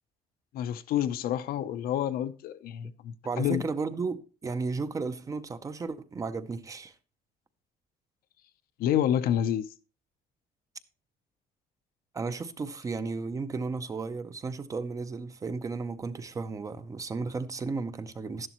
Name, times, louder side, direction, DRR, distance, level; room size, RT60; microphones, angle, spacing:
voice 1, 0.5-3.6 8.8-9.7, left 10 dB, 65° left, 0.7 m, -28 dB
voice 2, 3.2-6.9 12.1-18.5, right 4 dB, 20° right, 0.6 m, -34 dB
12.0 x 11.0 x 3.0 m
cardioid pair, 175°, 16 cm